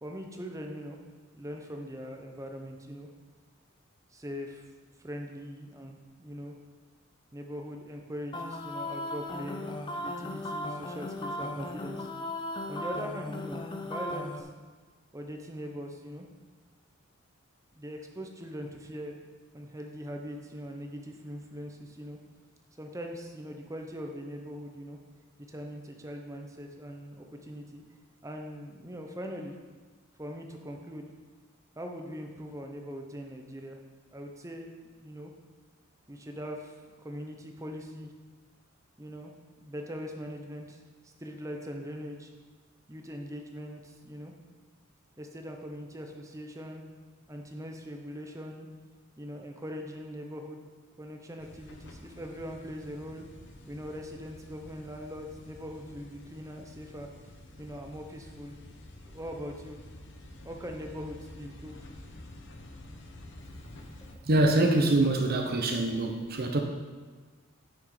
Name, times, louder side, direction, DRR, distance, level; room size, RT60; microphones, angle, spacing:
voice 1, 0.0-1.0 1.3-3.1 4.1-4.6 5.0-6.5 7.3-9.7 10.0-12.1 12.7-14.5 15.1-16.2 17.8-19.2 19.5-22.2 22.8-25.0 25.5-27.8 28.2-29.5 30.2-31.1 31.8-33.8 34.1-34.7 35.0-35.3 36.1-38.1 39.0-39.3 39.6-42.3 42.9-44.3 45.2-46.8 47.3-48.7 49.2-50.6 51.0-53.2 53.7-57.1 57.6-58.6 59.1-59.8 60.4-61.8 64.1-64.2, equal, 15° right, 3 dB, 0.8 m, -41 dB
sound 1, 8.3-14.4, left 1 dB, 20° left, 0.6 m, -37 dB
sound 2, 51.4-64.1, left 1 dB, 55° left, 1.0 m, -49 dB
voice 2, 64.2-66.6, right 2 dB, 45° right, 3 dB, 0.8 m, -24 dB
8.9 x 6.2 x 4.9 m, 1.4 s
head